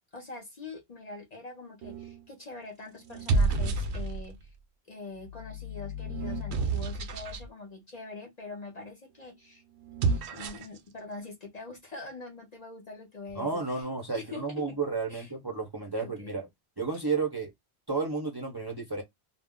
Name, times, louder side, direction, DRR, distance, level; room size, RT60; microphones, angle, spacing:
voice 1, 0.1-4.5 4.9-9.6 10.0-13.8 14.1-14.8 15.1-15.3 16.0-16.4, left 3 dB, 45° left, 0.7 m, -44 dB
sound 1, 1.8-2.2 3.0-4.4 5.1-7.5 9.8-10.8, right 3 dB, 80° right, 0.8 m, -30 dB
voice 2, 13.3-16.5 16.8-17.5 17.9-19.0, right 4 dB, 30° right, 0.5 m, -32 dB
2.4 x 2.0 x 3.5 m
omnidirectional pair, 1.1 m